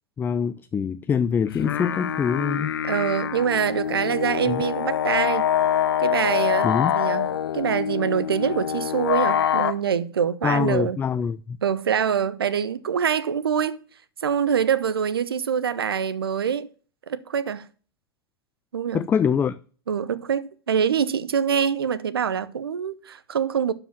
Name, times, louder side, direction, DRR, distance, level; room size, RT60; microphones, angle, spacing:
voice 1, 0.2-2.7 4.5-4.6 6.6-6.9 10.4-11.6 18.9-19.6, left 7 dB, 15° left, 0.4 m, -24 dB
sound 1, 1.5-9.7, left 9 dB, 70° left, 0.8 m, -25 dB
voice 2, 2.8-5.5 6.0-11.0 11.6-13.8 14.2-16.7 17.1-17.7 18.7-19.1 19.9-23.7, right 7 dB, 75° right, 0.7 m, -25 dB
12.0 x 4.9 x 6.0 m
figure-of-eight pair, 100°, 13 cm